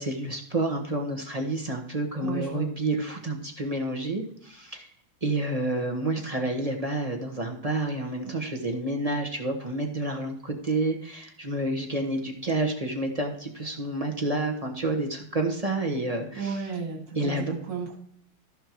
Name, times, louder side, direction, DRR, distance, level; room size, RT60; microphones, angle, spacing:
voice 1, 0.0-4.9 5.2-16.7 17.1-17.5, right 2 dB, 25° right, 2 dB, 0.9 m, -29 dB
voice 2, 2.2-2.7 16.3-18.0, right 5 dB, 60° right, 1 dB, 2.5 m, -33 dB
13.5 x 5.5 x 4.6 m, 0.67 s
omnidirectional pair, 2.4 m